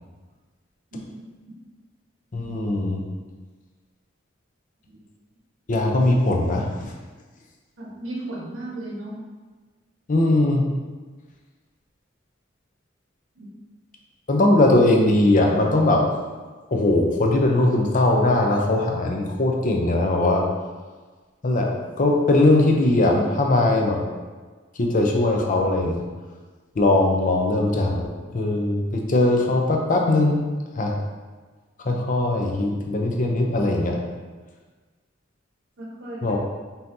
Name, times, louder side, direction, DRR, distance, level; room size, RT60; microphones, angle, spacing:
voice 1, 2.3-3.1 5.7-6.9 10.1-10.6 14.3-16.0 16.7-20.4 21.4-21.7 22.0-24.0 24.8-26.0 26.8-28.0 28.3-30.4 30.8-31.0 31.8-34.0 36.2-36.4, left 2 dB, 40° left, 1 dB, 0.5 m, -20 dB
voice 2, 7.8-9.2 13.3-13.5 35.8-36.4, right 1 dB, 85° right, -4 dB, 1.1 m, -35 dB
5.5 x 2.8 x 2.7 m, 1.4 s
head